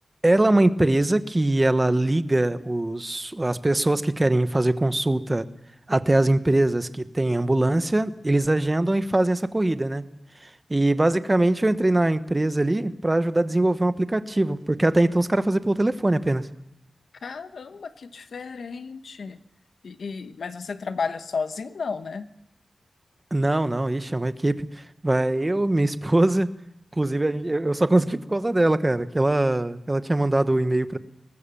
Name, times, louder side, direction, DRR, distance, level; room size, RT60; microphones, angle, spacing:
voice 1, 0.2-5.5 5.9-10.0 10.4-16.5 23.3-26.5 26.9-31.0, right 1 dB, 20° right, 11 dB, 1.1 m, -22 dB
voice 2, 17.2-19.4 19.8-22.3, left 5 dB, 80° left, 9 dB, 1.1 m, -33 dB
23.0 x 19.5 x 7.0 m, 0.87 s
wide cardioid pair, 135°, 0 cm